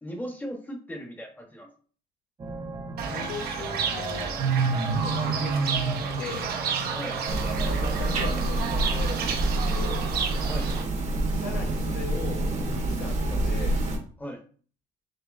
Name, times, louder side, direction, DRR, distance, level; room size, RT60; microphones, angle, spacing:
voice 1, 0.0-1.7 6.9-7.2 10.5-10.7 14.2-14.4, equal, 10° left, 3 dB, 1.0 m, -37 dB
sound 1, 2.4-10.9, right 2 dB, 25° right, 0.7 m, -38 dB
Fowl / Bird, 3.0-10.8, right 6 dB, 70° right, 0.8 m, -29 dB
voice 2, 3.1-4.4 5.0-6.5 7.6-10.1 11.3-13.8, left 6 dB, 85° left, 0 dB, 0.9 m, -39 dB
sound 2, 7.3-14.0, right 2 dB, 45° right, 1.0 m, -27 dB
6.3 x 3.0 x 2.5 m, 0.43 s
cardioid pair, 110°, 17 cm